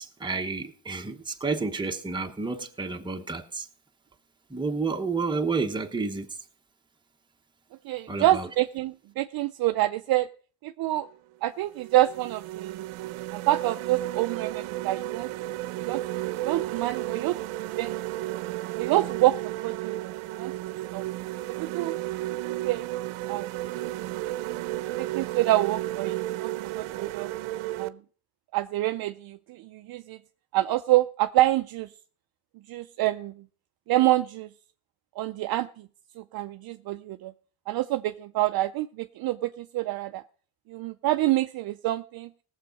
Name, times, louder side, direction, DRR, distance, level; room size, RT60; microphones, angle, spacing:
voice 1, 0.0-3.7 4.5-6.3 8.1-8.5, right 4 dB, 10° right, 1.0 m, -30 dB
voice 2, 7.8-10.3 10.6-11.1 11.4-12.8 13.3-16.0 16.4-17.4 17.8-17.9 18.8-20.5 20.9-21.0 21.6-21.9 22.5-22.9 23.3-23.5 25.0-27.3 27.8-27.9 28.5-30.2 30.5-31.9 32.7-33.3 33.9-34.5 35.2-35.9 36.2-37.3 37.7-40.2 40.7-42.3, right 16 dB, 50° right, 0.5 m, -27 dB
sound 1, 11.0-11.1 11.7-27.9, right 16 dB, 75° right, 0.8 m, -33 dB
18.0 x 7.3 x 5.2 m
cardioid pair, 140°, 49 cm